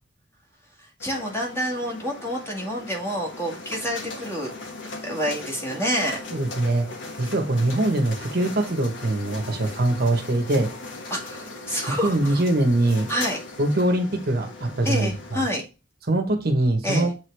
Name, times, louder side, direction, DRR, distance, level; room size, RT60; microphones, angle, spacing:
sound 1, 1.0-15.4, left 3 dB, 75° left, 1.4 m, -38 dB
voice 1, 1.0-4.5 5.0-6.2 11.1-12.4 13.1-13.4 14.8-15.6 16.8-17.1, equal, 15° left, -2 dB, 2.0 m, -28 dB
voice 2, 6.3-6.9 7.2-10.7 12.0-13.1 13.6-15.4 16.1-17.1, right 1 dB, 55° right, 5 dB, 1.1 m, -22 dB
7.9 x 3.7 x 3.4 m, 0.30 s
head